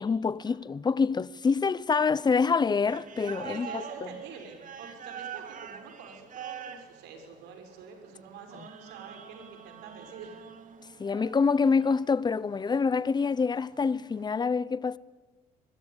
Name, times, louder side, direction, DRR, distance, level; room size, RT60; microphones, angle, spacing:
voice 1, 0.0-3.8 11.0-15.0, left 5 dB, 25° left, 0.9 m, -26 dB
sound 1, 2.6-14.2, right 8 dB, 50° right, 2.8 m, -45 dB
voice 2, 3.5-10.5, right 5 dB, 85° right, 6.3 m, -47 dB
25.5 x 21.0 x 9.9 m
cardioid pair, 110°, 17 cm